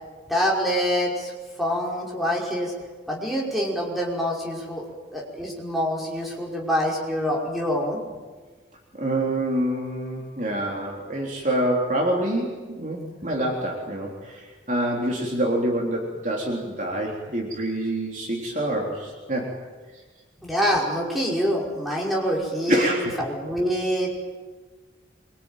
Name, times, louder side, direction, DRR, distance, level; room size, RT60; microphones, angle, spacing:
voice 1, 0.3-1.3 1.6-2.7 3.1-4.8 5.1-8.0 20.4-24.1, equal, ahead, -3 dB, 5.4 m, -25 dB
voice 2, 8.9-19.5 22.7-23.1, right 1 dB, 45° right, -1 dB, 3.7 m, -26 dB
25.0 x 24.0 x 9.2 m, 1.4 s
head